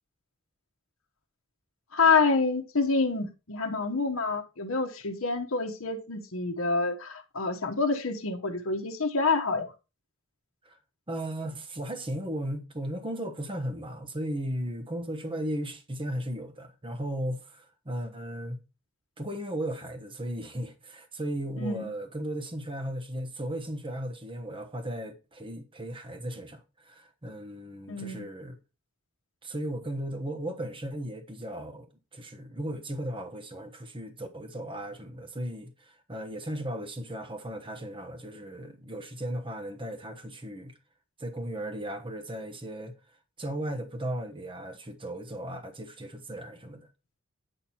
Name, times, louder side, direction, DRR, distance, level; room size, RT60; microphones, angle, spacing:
voice 1, 1.9-9.7 21.6-21.9 27.9-28.2, left 4 dB, 70° left, 1.1 m, -27 dB
voice 2, 11.1-18.6 19.2-28.6 29.4-31.9 32.1-40.7 41.2-42.9 43.4-46.9, right 1 dB, 25° right, 1.2 m, -36 dB
9.0 x 5.9 x 4.3 m
head